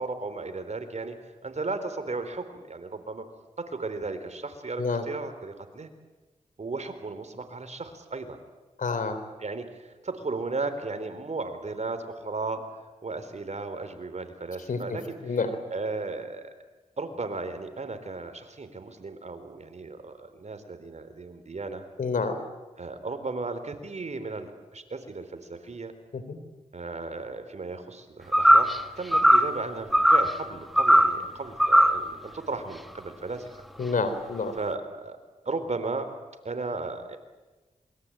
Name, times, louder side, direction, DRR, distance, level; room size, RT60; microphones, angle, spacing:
voice 1, 0.0-3.3 3.6-5.9 6.6-8.4 9.4-15.4 15.7-16.4 17.0-21.8 22.8-25.9 26.7-33.5 34.6-35.2 35.5-36.2 36.4-37.2, right 3 dB, 55° right, 9 dB, 3.9 m, -35 dB
voice 2, 8.8-9.2 14.7-15.5 22.0-22.4 26.1-26.4 33.8-34.5, left 4 dB, 75° left, 10 dB, 3.7 m, -28 dB
sound 1, 28.3-28.8 29.1-29.6 29.9-30.3 30.8-31.2 31.6-32.0, equal, ahead, 1.9 m, -18 dB
27.5 x 23.0 x 9.0 m, 1.2 s
cardioid pair, 50°, 14 cm